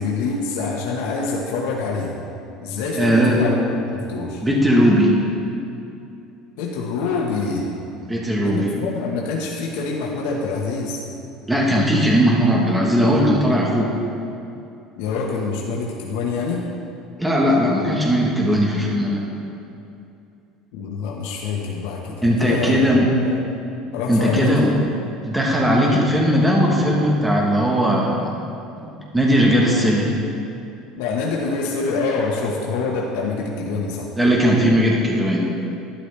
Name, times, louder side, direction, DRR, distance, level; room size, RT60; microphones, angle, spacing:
voice 1, 0.0-2.2 2.6-4.4 6.6-7.7 8.4-11.0 14.9-16.7 20.7-23.4 23.9-24.6 31.0-34.1, left 4 dB, 80° left, -2 dB, 1.3 m, -25 dB
voice 2, 3.0-3.4 4.4-5.1 8.0-8.7 11.5-13.9 17.2-19.2 22.2-23.1 24.1-24.7 25.2-28.3 28.8-28.9 29.1-30.1 34.2-35.5, equal, 5° right, -2 dB, 1.3 m, -18 dB
12.0 x 11.5 x 3.4 m, 2.7 s
cardioid pair, 160°, 0 cm